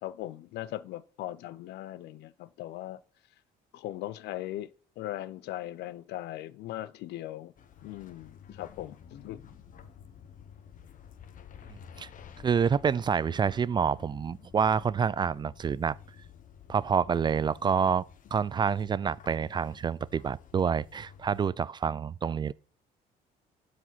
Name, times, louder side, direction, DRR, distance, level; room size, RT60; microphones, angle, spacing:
voice 1, 0.0-3.0 3.7-4.7 5.0-7.5 7.8-9.4, left 14 dB, 80° left, 0.6 m, -39 dB
sound 1, 7.6-21.5, left 8 dB, 50° left, 1.1 m, -51 dB
voice 2, 12.4-16.0 16.7-18.0 18.3-22.5, right 6 dB, 25° right, 0.3 m, -27 dB
12.0 x 4.9 x 5.8 m
cardioid pair, 110°, 17 cm